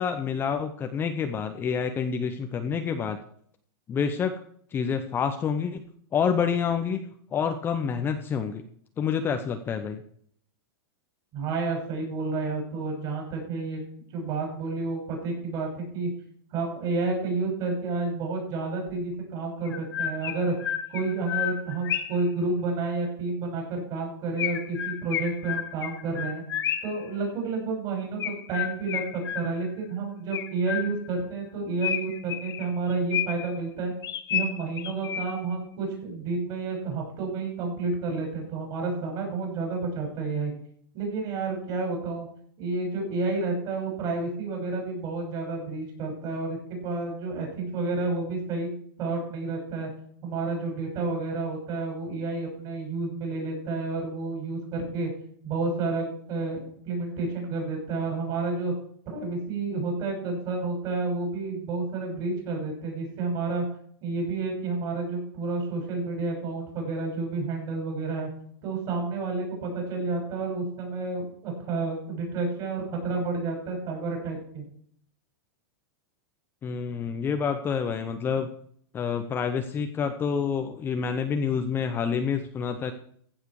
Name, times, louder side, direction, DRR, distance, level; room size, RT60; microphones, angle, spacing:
voice 1, 0.0-3.2 3.9-4.4 4.7-5.8 6.1-8.6 9.0-10.0 76.6-78.5 78.9-82.9, left 6 dB, 15° left, 7 dB, 0.8 m, -28 dB
voice 2, 11.3-13.8 14.1-16.1 16.5-20.5 20.9-26.4 26.8-33.9 34.3-40.5 40.9-42.3 42.6-48.7 49.0-49.9 50.2-55.1 55.4-58.7 59.0-63.7 64.0-68.3 68.6-74.6, right 3 dB, 35° right, 1 dB, 6.6 m, -30 dB
Chirp tweet, 18.9-19.0 19.7-22.3 24.4-27.0 28.2-29.8 30.3-31.2 31.8-33.6 34.0-35.5, left 10 dB, 80° left, 1.5 m, -32 dB
15.0 x 7.4 x 4.8 m, 0.62 s
supercardioid pair, 155°, 12 cm